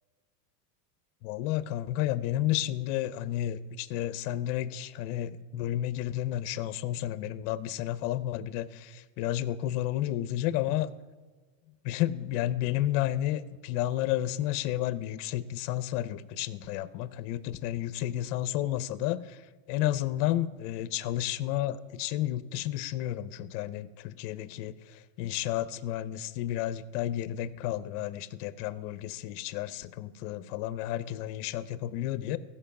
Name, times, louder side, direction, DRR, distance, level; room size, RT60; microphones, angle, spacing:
voice 1, 1.2-10.9 11.8-19.4 19.7-32.4, left 13 dB, 55° left, 16 dB, 0.7 m, -31 dB
15.5 x 5.5 x 6.9 m, 1.4 s
supercardioid pair, 145°, 46 cm